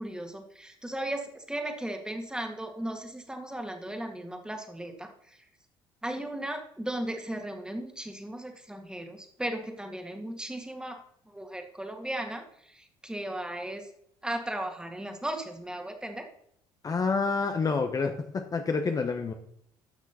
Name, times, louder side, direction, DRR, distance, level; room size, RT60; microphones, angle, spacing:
voice 1, 0.0-5.1 6.0-11.0 11.3-12.4 12.8-13.8 14.2-16.3, right 1 dB, 5° right, 5 dB, 2.0 m, -36 dB
voice 2, 16.8-19.3, left 4 dB, 35° left, 6 dB, 1.0 m, -28 dB
12.5 x 6.1 x 4.2 m, 0.68 s
supercardioid pair, 70°, 11 cm